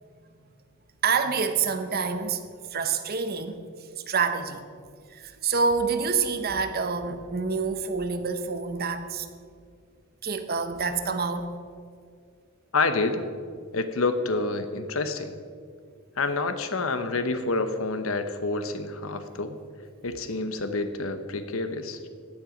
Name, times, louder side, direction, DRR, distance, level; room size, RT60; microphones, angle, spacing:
voice 1, 1.0-2.4 2.7-3.6 4.0-4.7 5.1-9.3 10.2-11.6, right 5 dB, 50° right, 9 dB, 1.0 m, -27 dB
voice 2, 12.7-13.2 13.7-15.3 16.2-19.6 20.0-22.0, left 3 dB, 80° left, 9 dB, 1.1 m, -28 dB
16.0 x 10.5 x 5.2 m, 2.2 s
head